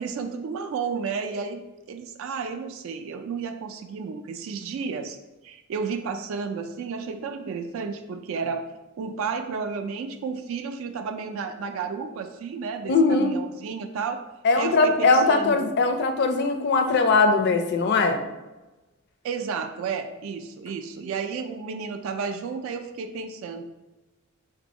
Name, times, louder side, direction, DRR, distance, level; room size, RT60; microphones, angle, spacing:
voice 1, 0.0-1.6 1.9-5.2 5.4-8.7 9.0-14.2 14.6-15.7 19.2-23.6, right 5 dB, 70° right, 8 dB, 0.3 m, -32 dB
voice 2, 12.9-13.3 14.4-18.2, left 3 dB, 55° left, 7 dB, 0.4 m, -20 dB
3.4 x 2.6 x 4.1 m, 1.1 s
head